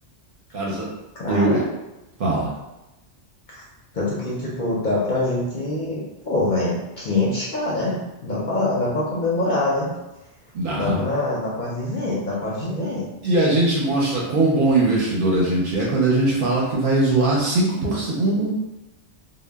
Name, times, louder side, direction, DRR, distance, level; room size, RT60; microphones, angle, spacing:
voice 1, 0.5-0.9 1.3-1.6 2.2-2.5 10.5-11.0 13.2-18.5, right 2 dB, 60° right, -4 dB, 0.6 m, -20 dB
voice 2, 1.2-1.6 3.5-3.6 3.9-9.9 10.7-13.1, left 2 dB, 55° left, -6 dB, 0.6 m, -24 dB
2.1 x 2.0 x 3.3 m, 0.98 s
omnidirectional pair, 1.2 m